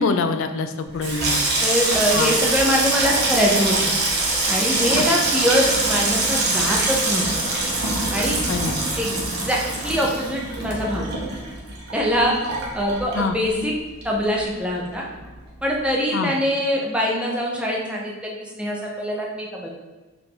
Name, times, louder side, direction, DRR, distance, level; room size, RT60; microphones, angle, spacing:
voice 1, 0.0-1.4 2.1-2.3 4.9-5.1 8.5-8.8 13.1-13.4 16.1-16.3, left 4 dB, 65° left, 8 dB, 0.4 m, -24 dB
Water tap faucet / Sink (filling or washing), 0.9-13.7 14.0-14.7 14.9-15.3, right 2 dB, 50° right, 0.8 m, -24 dB
voice 2, 1.6-4.0 4.5-7.3 8.1-8.4 8.6-11.1 11.9-12.4 12.7-13.7 14.0-15.0 15.6-19.7, equal, 5° right, -3 dB, 0.5 m, -23 dB
4.7 x 2.5 x 3.8 m, 1.2 s
head